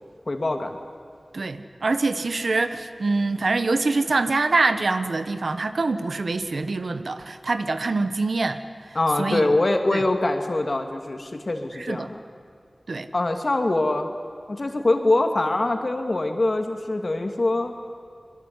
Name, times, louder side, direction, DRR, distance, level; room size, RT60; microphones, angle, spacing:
voice 1, 0.3-0.8 8.9-12.2 13.1-14.1 14.5-17.7, left 2 dB, 55° left, 5 dB, 2.7 m, -23 dB
voice 2, 1.3-8.6 9.2-9.5 9.9-10.0 11.9-12.1 12.9-13.1, right 3 dB, 90° right, 10 dB, 1.4 m, -24 dB
25.5 x 22.0 x 9.8 m, 2.3 s
wide cardioid pair, 65°, 0 cm